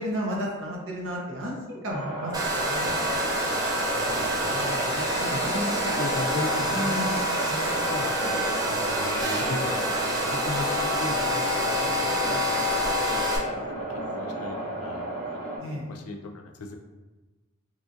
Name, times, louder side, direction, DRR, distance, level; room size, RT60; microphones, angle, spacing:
voice 1, 0.0-2.9 6.7-7.2 11.3-14.0 15.6-15.9, equal, 60° right, -2 dB, 0.7 m, -34 dB
sound 1, 1.9-15.6, right 1 dB, 90° right, 1.4 m, -32 dB
Domestic sounds home sounds, 2.3-13.4, equal, 15° right, 0.4 m, -27 dB
voice 2, 4.0-9.9 10.2-12.3 12.7-12.8 13.1-13.5 13.9-15.4 15.9-16.2 16.6-16.8, left 2 dB, 85° left, 3 dB, 0.4 m, -37 dB
3.2 x 2.4 x 2.5 m, 1.2 s
head